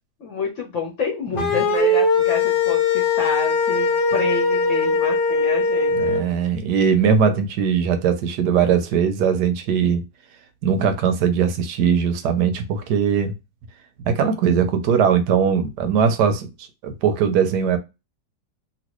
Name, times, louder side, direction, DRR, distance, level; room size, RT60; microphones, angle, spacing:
voice 1, 0.2-6.1, left 4 dB, 55° left, 1.0 m, -29 dB
sound 1, 1.4-6.2, left 3 dB, 70° left, 0.4 m, -20 dB
voice 2, 5.9-10.0 10.6-13.3 14.1-16.5 16.8-17.8, right 7 dB, 75° right, 1.2 m, -20 dB
3.0 x 2.7 x 3.0 m
omnidirectional pair, 1.9 m